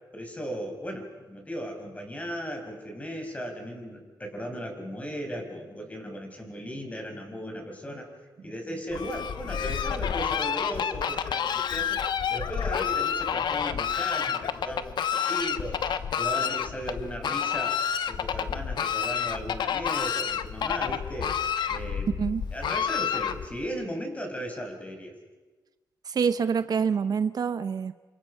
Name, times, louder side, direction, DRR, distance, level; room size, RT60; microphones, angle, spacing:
voice 1, 0.1-8.1 8.4-17.8 18.1-21.4 21.7-22.1 22.5-25.1, equal, 20° left, 3 dB, 5.7 m, -36 dB
Fowl, 8.9-23.7, left 8 dB, 75° left, 1.1 m, -29 dB
voice 2, 26.1-27.9, right 6 dB, 55° right, 12 dB, 0.8 m, -26 dB
28.0 x 26.0 x 5.7 m, 1.3 s
cardioid pair, 90°, 8 cm